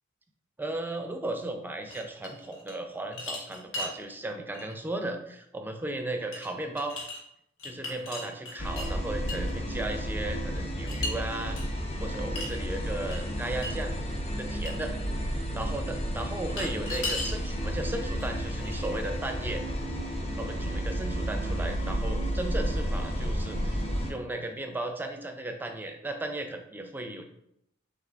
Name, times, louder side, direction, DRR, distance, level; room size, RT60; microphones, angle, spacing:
voice 1, 0.6-7.0 7.6-14.0 14.4-14.9 15.5-19.6 20.4-27.2, right 2 dB, 10° right, 5 dB, 0.4 m, -36 dB
sound 1, 1.9-2.8 3.1-4.0 4.5-4.7 6.3-6.5 6.8-7.2 7.6-8.9 9.3-9.5 10.9-11.1 11.6-11.7 12.3-12.6 13.1-13.2 13.6-13.7 14.1-14.2 14.6-14.7 16.4-17.3 18.2-18.3 18.6-19.1, left 2 dB, 85° left, 1.2 m, -36 dB
sound 2, 8.6-24.1, equal, 30° left, 0.6 m, -32 dB
5.5 x 3.7 x 2.4 m, 0.78 s
head